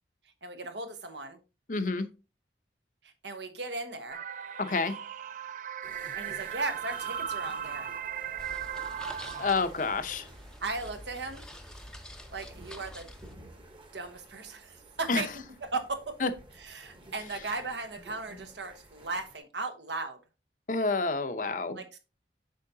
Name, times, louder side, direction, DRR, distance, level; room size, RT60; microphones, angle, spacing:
voice 1, 0.4-1.4 3.0-4.2 6.2-7.9 10.6-11.4 12.3-13.1 13.9-15.4 15.7-16.2 16.6-20.2 21.7-22.0, right 3 dB, 80° right, 1.3 m, -37 dB
voice 2, 1.7-2.1 4.6-5.0 9.4-10.3 15.1-15.2 16.2-16.3 20.7-21.8, left 3 dB, 45° left, 0.7 m, -28 dB
sound 1, 4.1-9.6, right 8 dB, 45° right, 0.3 m, -37 dB
sound 2, 5.8-19.4, right 1 dB, 30° right, 1.2 m, -53 dB
sound 3, 8.4-13.4, left 1 dB, 5° left, 0.7 m, -47 dB
8.4 x 5.7 x 2.8 m
head